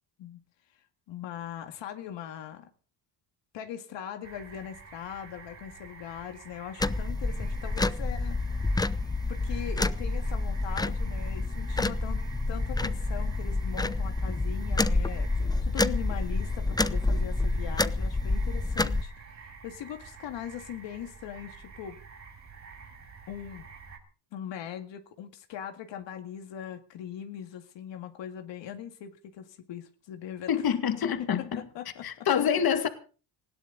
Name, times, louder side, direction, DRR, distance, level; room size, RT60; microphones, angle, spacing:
voice 1, 1.1-2.7 3.5-8.8 9.3-12.2 12.5-22.0 23.3-23.6 24.3-30.5 31.6-32.3, left 10 dB, 90° left, 2.0 m, -40 dB
sound 1, 4.2-24.0, right 5 dB, 40° right, 4.9 m, -49 dB
sound 2, 6.8-19.0, left 2 dB, 10° left, 0.7 m, -28 dB
voice 2, 30.5-31.6 32.0-32.9, left 8 dB, 55° left, 2.2 m, -26 dB
19.5 x 17.0 x 4.0 m
cardioid pair, 115°, 43 cm